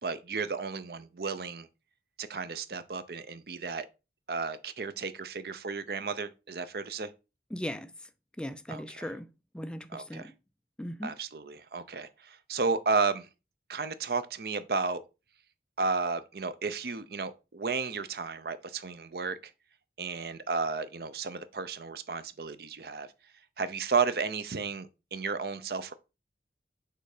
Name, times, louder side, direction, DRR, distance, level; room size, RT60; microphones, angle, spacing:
voice 1, 0.0-1.7 2.2-3.9 4.3-7.1 8.7-9.1 9.9-10.3 11.0-13.3 13.7-15.0 15.8-19.4 20.0-23.1 23.6-25.9, right 4 dB, 60° right, 0.6 m, -33 dB
voice 2, 7.5-7.9 8.4-9.3 9.5-10.3 10.8-11.1, equal, 5° left, 0.4 m, -38 dB
6.7 x 3.3 x 4.9 m
head